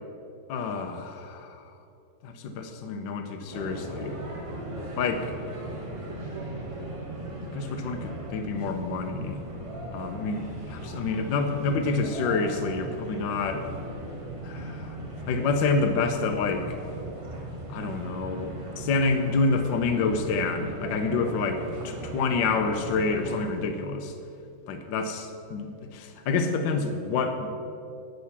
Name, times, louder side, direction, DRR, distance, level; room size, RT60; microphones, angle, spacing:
voice 1, 0.5-1.6 2.2-4.2 5.0-5.3 7.5-9.4 9.9-13.7 14.4-15.0 15.3-16.8 17.7-21.6 21.8-24.1 24.7-27.5, left 4 dB, 70° left, 5 dB, 1.3 m, -28 dB
sound 1, 3.5-23.5, right 1 dB, 45° right, 0.4 m, -38 dB
9.0 x 6.5 x 7.1 m, 2.6 s
omnidirectional pair, 2.4 m